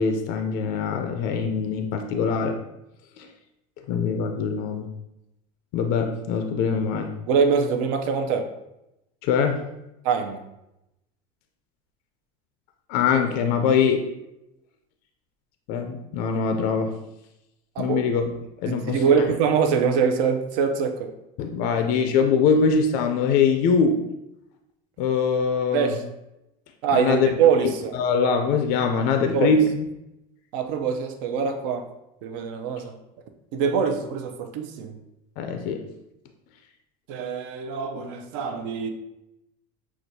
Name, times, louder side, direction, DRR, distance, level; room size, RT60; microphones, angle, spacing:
voice 1, 0.0-2.6 3.2-3.3 3.9-4.9 5.7-7.1 9.2-9.6 12.9-14.1 15.7-16.9 17.8-18.3 18.6-19.3 21.4-24.0 25.0-25.9 26.9-27.3 27.6-29.9 35.4-35.8, left 5 dB, 55° left, 6 dB, 0.4 m, -23 dB
voice 2, 7.3-8.5 10.0-10.4 17.8-18.0 18.7-21.1 25.7-26.0 26.8-27.9 29.3-29.6 30.5-31.9 32.2-32.9 33.5-35.0 37.1-38.9, right 6 dB, 70° right, 5 dB, 0.6 m, -23 dB
6.1 x 2.3 x 2.7 m, 0.89 s
supercardioid pair, 140°, 18 cm